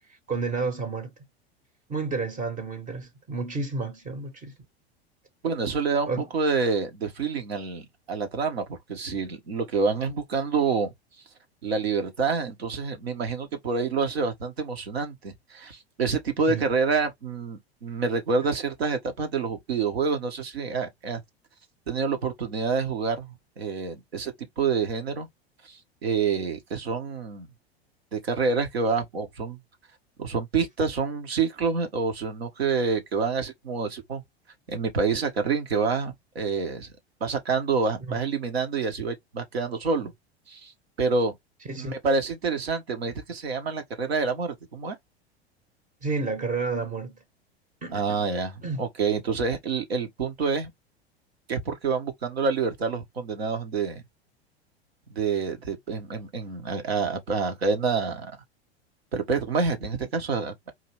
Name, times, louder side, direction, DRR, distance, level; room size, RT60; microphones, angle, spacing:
voice 1, 0.3-1.1 1.9-4.5 6.1-6.3 16.5-16.7 38.1-38.2 41.7-42.0 46.0-47.2 47.8-48.2 48.6-48.8, right 4 dB, 25° right, 1.0 m, -30 dB
voice 2, 5.4-10.9 11.6-21.2 21.9-25.3 25.6-27.5 28.1-29.6 30.2-34.2 34.7-36.9 37.2-40.1 40.5-40.7 41.0-41.3 41.8-45.0 47.9-50.7 51.5-54.0 55.1-58.3 59.1-60.7, right 4 dB, 70° right, 1.4 m, -27 dB
4.6 x 3.0 x 3.0 m
figure-of-eight pair, 85°, 32 cm